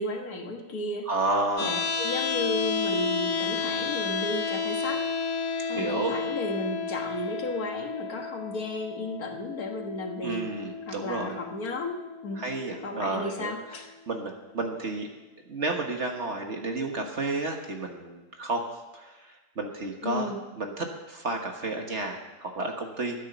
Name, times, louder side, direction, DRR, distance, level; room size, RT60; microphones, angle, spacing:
voice 1, 0.0-1.0 1.6-5.1 5.7-10.4 10.9-12.0 12.2-12.4 12.8-13.9 20.0-20.4, left 2 dB, 60° left, 3 dB, 1.8 m, -34 dB
voice 2, 1.1-1.8 3.5-3.9 5.7-6.2 10.2-11.3 12.3-15.1 15.5-18.6 18.9-20.3 20.6-23.3, right 2 dB, 45° right, 3 dB, 1.6 m, -32 dB
sound 1, 1.6-13.6, left 5 dB, 85° left, 1.7 m, -32 dB
13.0 x 9.6 x 6.8 m, 1.1 s
omnidirectional pair, 1.8 m